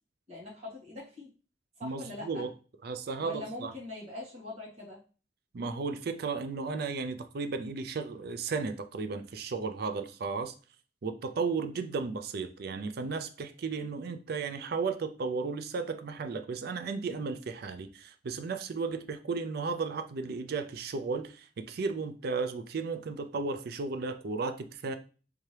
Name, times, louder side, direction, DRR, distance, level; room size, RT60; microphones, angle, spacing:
voice 1, 0.3-1.3 1.8-2.5 3.2-5.0, left 2 dB, 35° right, 1.8 m, -42 dB
voice 2, 1.8-2.5 2.8-3.7 5.5-10.5 11.0-25.0, right 4 dB, 55° right, 0.4 m, -34 dB
3.4 x 2.9 x 3.2 m
head